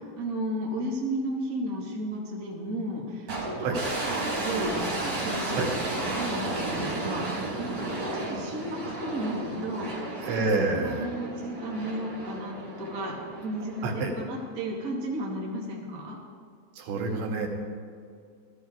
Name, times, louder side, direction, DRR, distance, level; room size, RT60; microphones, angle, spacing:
voice 1, 0.2-3.6 4.0-10.1 10.7-16.2, right 1 dB, 30° right, -3 dB, 1.8 m, -34 dB
sound 1, 3.3-14.5, right 2 dB, 50° right, 6.4 m, -33 dB
voice 2, 10.2-11.1 13.8-14.1 16.8-17.5, right 3 dB, 85° right, 1 dB, 4.2 m, -27 dB
18.5 x 14.5 x 4.7 m, 2.3 s
omnidirectional pair, 5.0 m